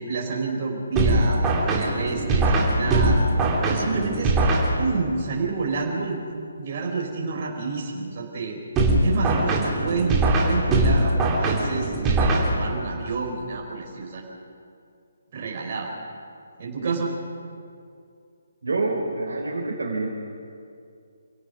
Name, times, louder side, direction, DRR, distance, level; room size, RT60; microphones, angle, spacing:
voice 1, 0.0-1.4 1.7-3.2 3.7-4.3 4.8-6.2 6.6-8.6 9.0-14.2 15.3-15.9 16.6-17.1, right 4 dB, 40° right, -1 dB, 5.1 m, -29 dB
sound 1, 1.0-5.2 8.8-13.0, right 2 dB, 15° right, 3.2 m, -21 dB
voice 2, 18.6-20.1, right 3 dB, 65° right, -4 dB, 3.8 m, -26 dB
27.5 x 17.5 x 6.1 m, 2.4 s
figure-of-eight pair, 140°, 0 cm